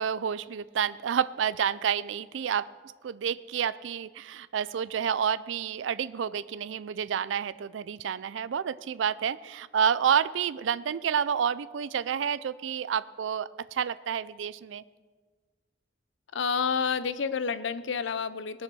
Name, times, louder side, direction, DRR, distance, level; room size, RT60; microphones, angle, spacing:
voice 1, 0.0-2.7 3.0-14.8, right 8 dB, 85° right, 17 dB, 0.4 m, -29 dB
voice 2, 16.3-18.6, left 6 dB, 80° left, 14 dB, 0.6 m, -29 dB
19.5 x 6.5 x 6.1 m, 1.4 s
head